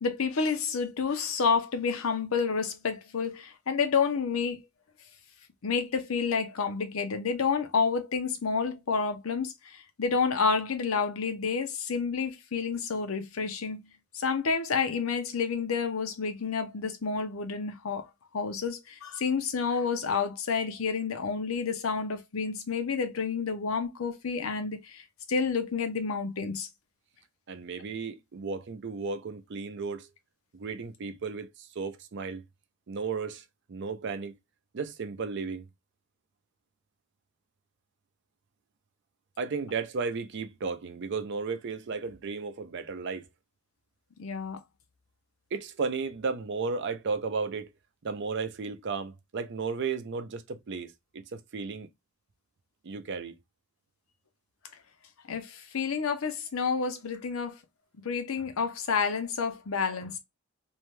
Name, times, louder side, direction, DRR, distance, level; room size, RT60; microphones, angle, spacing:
voice 1, 0.0-4.6 5.6-13.8 14.1-18.1 18.3-26.7 44.2-44.6 55.3-57.6 58.0-60.2, left 5 dB, 85° left, 0.7 m, -29 dB
voice 2, 27.5-30.1 30.5-32.4 32.9-33.4 33.7-34.3 34.7-35.7 39.4-43.3 45.5-47.7 48.0-51.9 52.8-53.4, right 4 dB, 60° right, 0.5 m, -34 dB
2.7 x 2.2 x 3.1 m
head